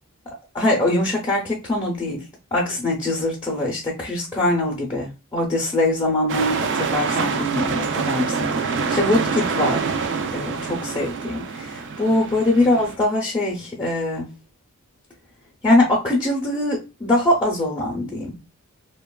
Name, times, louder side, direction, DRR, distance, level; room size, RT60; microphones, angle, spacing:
voice 1, 0.5-2.2 2.5-9.9 10.3-14.3 15.6-18.4, left 1 dB, 20° left, -2 dB, 0.6 m, -22 dB
sound 1, 6.3-12.9, right 5 dB, 55° right, 0.4 m, -26 dB
2.9 x 2.2 x 2.2 m, 0.28 s
head